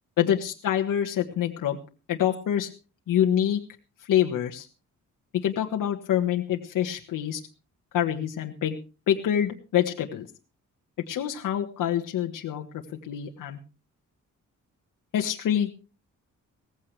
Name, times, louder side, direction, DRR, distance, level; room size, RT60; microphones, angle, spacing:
voice 1, 0.2-1.8 2.1-2.7 3.1-3.6 4.1-4.7 5.4-7.4 7.9-8.8 9.1-10.3 11.1-13.6 15.1-15.7, left 10 dB, 90° left, 2 dB, 1.5 m, -26 dB
18.0 x 15.5 x 3.3 m, 0.34 s
cardioid pair, 120°, 31 cm